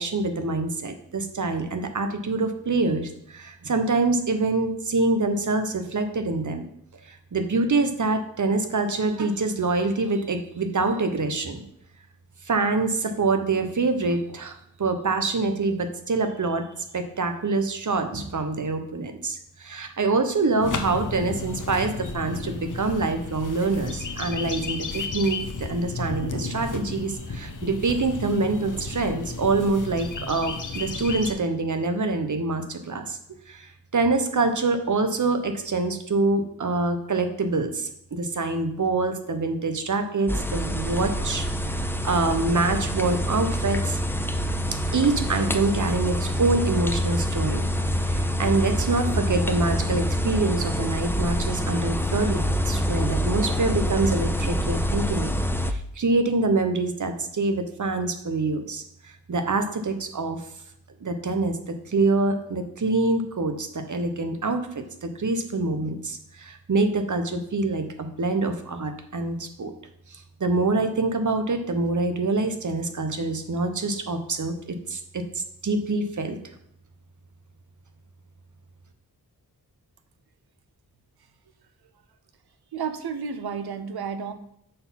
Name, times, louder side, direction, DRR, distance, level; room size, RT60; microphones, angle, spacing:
voice 1, 0.0-6.7 7.1-11.6 12.5-16.7 16.9-33.2 33.5-41.4 41.7-44.0 44.9-47.7 48.0-55.3 55.7-58.8 59.3-60.4 61.0-69.7 70.1-76.4, right 3 dB, 50° right, 7 dB, 1.0 m, -25 dB
sound 1, 20.6-31.3, left 3 dB, 55° left, 0.9 m, -33 dB
sound 2, 40.3-55.7, equal, 5° left, 0.5 m, -26 dB
voice 2, 82.7-84.3, right 6 dB, 85° right, 10 dB, 0.7 m, -31 dB
6.7 x 4.1 x 5.7 m, 0.74 s
cardioid pair, 45°, 37 cm